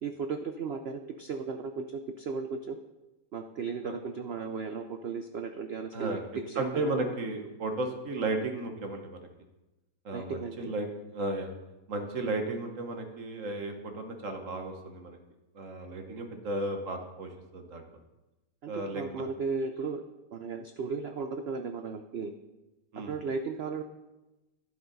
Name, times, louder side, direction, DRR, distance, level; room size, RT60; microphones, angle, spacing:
voice 1, 0.0-2.8 3.3-6.9 10.1-10.7 18.6-20.0 20.3-22.3 23.0-23.8, right 5 dB, 85° right, 7 dB, 0.5 m, -35 dB
voice 2, 6.6-9.2 10.0-10.9 11.1-11.5 11.9-15.2 15.5-17.8 18.7-19.0 22.9-23.1, right 2 dB, 50° right, 5 dB, 1.3 m, -34 dB
11.5 x 10.0 x 4.0 m, 1.0 s
omnidirectional pair, 1.9 m